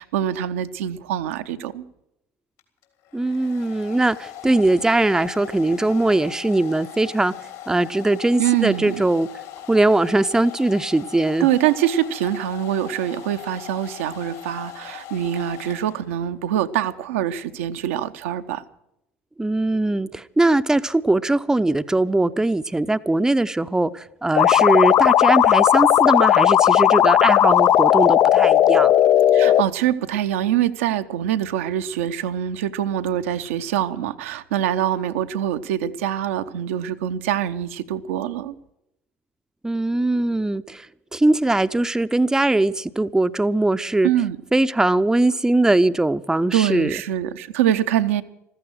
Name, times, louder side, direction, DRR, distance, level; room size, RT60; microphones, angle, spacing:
voice 1, 0.0-1.8 8.4-9.0 11.4-18.6 29.3-38.5 44.0-44.4 46.5-48.2, right 11 dB, 70° right, 0.8 m, -24 dB
Domestic sounds home sounds, 2.6-16.3, left 11 dB, 65° left, 3.1 m, -39 dB
voice 2, 3.1-7.3 7.7-9.3 9.7-11.5 19.4-28.9 39.6-40.9 41.1-44.1 44.5-46.9, right 2 dB, 10° right, 0.6 m, -20 dB
sound 1, 24.4-29.6, left 11 dB, 45° left, 0.5 m, -15 dB
14.5 x 14.5 x 6.3 m
figure-of-eight pair, 60°, 7 cm